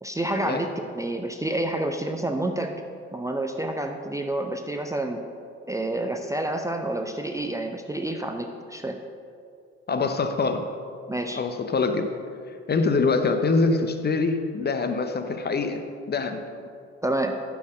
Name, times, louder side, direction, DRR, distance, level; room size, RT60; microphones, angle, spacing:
voice 1, 0.0-2.8 3.1-5.2 5.7-9.0 10.0-10.1 11.1-11.4 17.0-17.4, right 1 dB, 10° right, 4 dB, 0.6 m, -29 dB
voice 2, 9.9-10.6 11.3-12.1 12.5-16.4, left 4 dB, 30° left, 8 dB, 0.9 m, -24 dB
11.5 x 4.8 x 5.1 m, 2.3 s
figure-of-eight pair, 50°, 34 cm